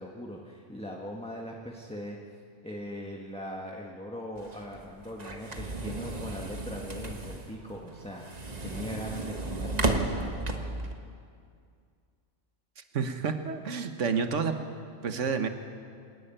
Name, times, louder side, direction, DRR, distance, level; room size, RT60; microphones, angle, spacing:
voice 1, 0.0-10.9, equal, 5° left, -1 dB, 1.4 m, -40 dB
sound 1, 4.4-10.9, right 2 dB, 35° right, 1.4 m, -34 dB
voice 2, 12.9-14.5 15.0-15.5, right 5 dB, 80° right, 7 dB, 1.5 m, -29 dB
26.5 x 11.0 x 9.1 m, 2.3 s
omnidirectional pair, 1.2 m